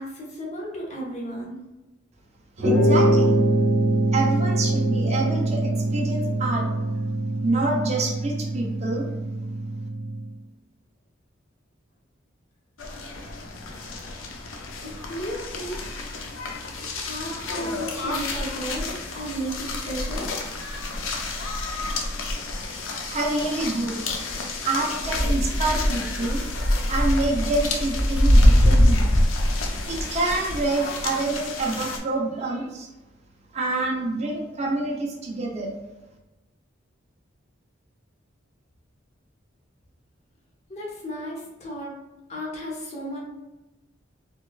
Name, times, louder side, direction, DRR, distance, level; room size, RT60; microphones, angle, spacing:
voice 1, 0.0-1.6 14.8-15.8 17.0-20.3 40.7-41.9 42.3-43.2, equal, 35° left, -4 dB, 0.9 m, -34 dB
voice 2, 2.6-3.4 4.1-6.7 7.4-9.1 23.0-24.0 24.6-26.4 26.9-29.1 29.9-32.9 33.5-35.7, right 2 dB, 35° right, -1 dB, 0.6 m, -27 dB
sound 1, 2.6-10.3, right 1 dB, 80° right, 0.8 m, -23 dB
sound 2, 12.8-32.0, left 1 dB, 85° left, 0.6 m, -25 dB
4.4 x 2.3 x 2.3 m, 1.0 s
head